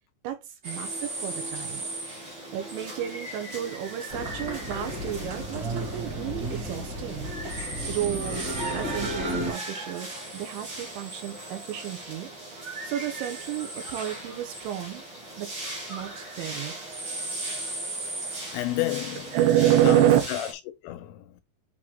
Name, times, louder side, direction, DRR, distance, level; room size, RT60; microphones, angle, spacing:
voice 1, 0.2-1.8 2.5-7.3 7.9-15.0 15.4-17.0 19.3-20.2, right 12 dB, 80° right, 2.8 m, -29 dB
sound 1, 0.6-20.5, right 2 dB, 60° right, 1.1 m, -37 dB
sound 2, 4.1-9.5, equal, 45° right, 1.5 m, -33 dB
voice 2, 18.5-19.4 19.8-20.5 20.8-21.4, left 15 dB, 85° left, 3.0 m, -31 dB
8.6 x 3.0 x 3.7 m
omnidirectional pair, 5.9 m